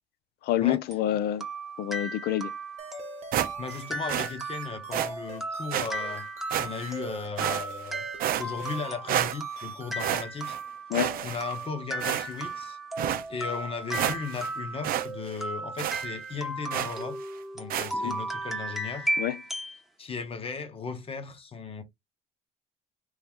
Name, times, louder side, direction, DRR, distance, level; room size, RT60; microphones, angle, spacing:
voice 1, 0.4-1.5 1.8-2.5 10.9-11.1 18.0-18.1 19.2-19.4, left 12 dB, 70° left, 0.4 m, -27 dB
sound 1, 0.9-19.8, right 1 dB, ahead, 0.9 m, -36 dB
sound 2, 2.8-10.0, right 5 dB, 40° right, 1.2 m, -46 dB
sound 3, 3.3-3.8 4.1-4.3 4.9-5.1 5.7-5.9 6.5-7.0 7.4-7.9 8.2-8.8 9.1-9.7 10.0-10.6 10.9-11.6 12.0-12.5 13.0-13.2 13.6-13.7 13.9-14.5 14.8-15.1 15.3-15.4 15.8-16.1 16.7-17.0 17.7-17.9, right 11 dB, 60° right, 0.5 m, -30 dB
voice 2, 3.6-6.3 6.5-8.1 8.4-10.5 11.2-12.8 13.3-17.2 17.5-19.1 20.0-21.8, left 5 dB, 35° left, 1.0 m, -36 dB
3.1 x 2.9 x 3.6 m
cardioid pair, 110°, 17 cm